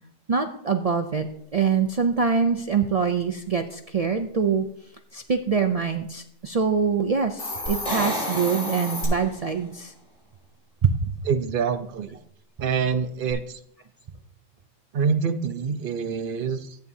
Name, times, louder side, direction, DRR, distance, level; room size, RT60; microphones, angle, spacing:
voice 1, 0.3-1.3 1.5-4.6 5.1-9.9 10.8-11.1, right 6 dB, 80° right, 6 dB, 0.3 m, -24 dB
Hiss, 7.2-9.1, left 1 dB, 85° left, 3.7 m, -32 dB
sound 1, 7.7-9.6 13.3-13.4, equal, 25° left, 4.6 m, -31 dB
voice 2, 11.2-12.2 12.6-13.6 14.9-16.8, right 6 dB, 55° right, 9 dB, 0.7 m, -26 dB
13.5 x 9.1 x 2.7 m, 0.70 s
omnidirectional pair, 1.3 m